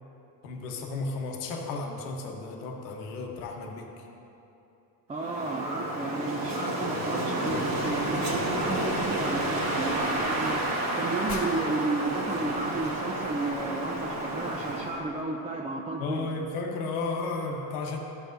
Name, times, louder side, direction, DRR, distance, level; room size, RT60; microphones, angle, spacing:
voice 1, 0.4-3.9 16.0-18.0, left 3 dB, 85° left, 1 dB, 1.1 m, -33 dB
voice 2, 5.1-10.7 11.0-16.3, right 2 dB, 15° right, -1 dB, 0.5 m, -33 dB
Wind, 5.1-15.0, right 1 dB, 35° right, 1.4 m, -30 dB
sound 1, 7.5-15.2, left 2 dB, 40° left, 1.4 m, -45 dB
12.0 x 6.4 x 2.6 m, 2.9 s
supercardioid pair, 85°, 44 cm